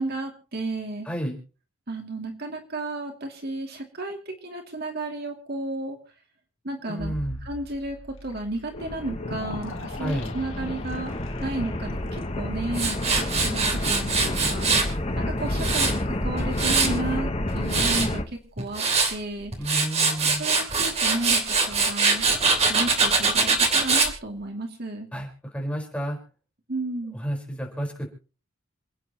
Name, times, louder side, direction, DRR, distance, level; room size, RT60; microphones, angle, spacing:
voice 1, 0.0-1.1 1.9-6.0 6.6-7.1 7.4-11.1 11.4-14.9 15.2-15.9 16.2-18.8 19.1-19.5 20.4-22.3 22.7-25.1 26.7-27.2, right 2 dB, 50° right, 3 dB, 2.5 m, -33 dB
voice 2, 1.0-1.4 6.9-7.4 10.0-10.3 19.6-20.4 25.1-26.2 27.1-28.1, equal, 5° left, 0 dB, 4.6 m, -31 dB
sound 1, 7.0-12.6, left 1 dB, 75° left, 2.0 m, -40 dB
sound 2, 8.8-18.2, left 1 dB, 30° left, 1.2 m, -29 dB
Tools, 12.7-14.9 15.4-17.0 17.5-18.1 18.6-19.1 19.5-24.1, right 4 dB, 30° right, 3.1 m, -23 dB
28.0 x 9.4 x 3.0 m, 0.36 s
head